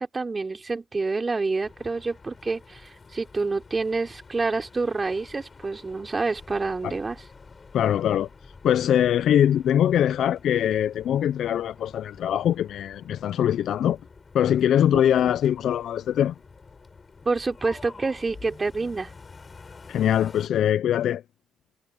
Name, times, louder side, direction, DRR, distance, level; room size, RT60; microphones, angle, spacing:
voice 1, 0.0-7.2 17.2-19.1, right 3 dB, 30° right, 3.4 m, -28 dB
sound 1, 1.6-20.5, left 4 dB, 35° left, 5.0 m, -49 dB
voice 2, 7.7-8.3 8.6-14.0 14.3-16.3 19.9-21.2, left 10 dB, 70° left, 0.5 m, -22 dB
cardioid pair, 80°, 0 cm